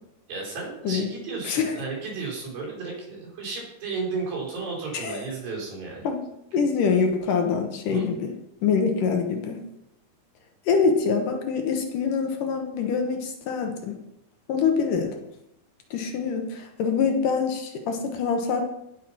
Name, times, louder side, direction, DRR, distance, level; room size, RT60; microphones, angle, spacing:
voice 1, 0.3-6.1 7.9-8.1, right 4 dB, 70° right, -4 dB, 6.4 m, -33 dB
voice 2, 1.4-1.7 4.9-5.2 6.0-6.2 6.5-8.3 8.6-9.6 10.7-14.0 14.5-15.2 15.9-18.6, left 5 dB, 65° left, 4 dB, 2.5 m, -25 dB
17.0 x 5.8 x 6.0 m, 0.84 s
omnidirectional pair, 4.3 m